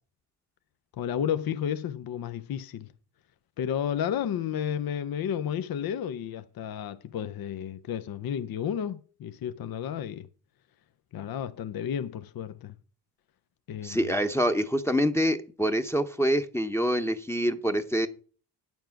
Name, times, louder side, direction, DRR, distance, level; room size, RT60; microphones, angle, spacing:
voice 1, 1.0-2.9 3.6-10.3 11.1-12.7 13.7-14.0, left 9 dB, 60° left, 0.7 m, -32 dB
voice 2, 13.8-18.1, equal, 5° left, 0.8 m, -26 dB
9.0 x 7.3 x 5.8 m
cardioid pair, 85°, 42 cm